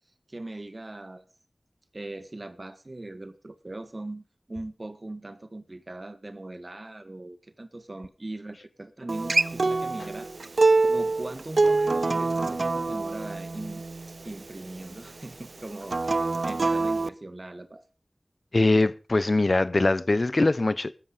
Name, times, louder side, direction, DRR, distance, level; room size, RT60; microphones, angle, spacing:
voice 1, 0.3-1.3 1.9-13.8 14.2-17.8, right 2 dB, 45° right, 1.7 m, -40 dB
Acoustic guitar, 9.1-14.3 15.8-17.1, right 3 dB, 80° right, 0.7 m, -25 dB
voice 2, 18.5-20.9, left 2 dB, 55° left, 1.0 m, -22 dB
13.5 x 13.5 x 5.1 m
wide cardioid pair, 60°, 0 cm